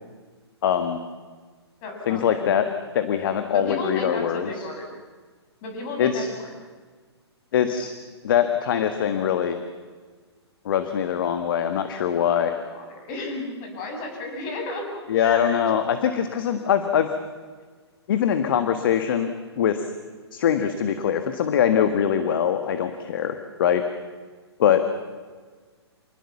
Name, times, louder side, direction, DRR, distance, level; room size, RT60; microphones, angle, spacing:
voice 1, 0.6-1.0 2.1-2.7 2.9-4.5 6.0-6.3 7.5-7.9 8.2-9.6 10.6-12.5 15.1-17.1 18.1-19.9 20.3-23.8 24.6-24.8, left 9 dB, 50° left, 8 dB, 1.7 m, -22 dB
voice 2, 1.8-2.5 3.5-4.9 5.6-6.5 12.4-15.6, left 2 dB, 35° left, 2 dB, 7.5 m, -33 dB
27.0 x 20.0 x 7.2 m, 1.5 s
figure-of-eight pair, 120°, 14 cm